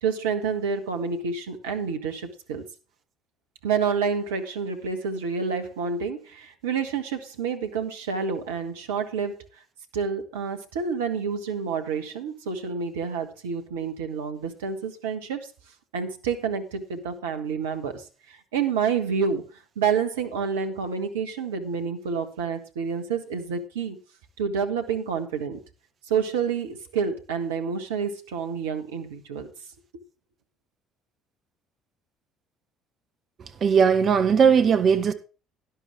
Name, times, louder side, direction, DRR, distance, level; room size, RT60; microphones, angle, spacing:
voice 1, 0.0-2.6 3.6-9.4 9.9-15.5 15.9-19.5 19.7-24.0 24.4-25.6 26.1-29.5, right 6 dB, 75° right, 1.5 m, -28 dB
voice 2, 33.6-35.1, right 6 dB, 45° right, 1.4 m, -18 dB
12.0 x 11.5 x 3.6 m
figure-of-eight pair, 55°, 0 cm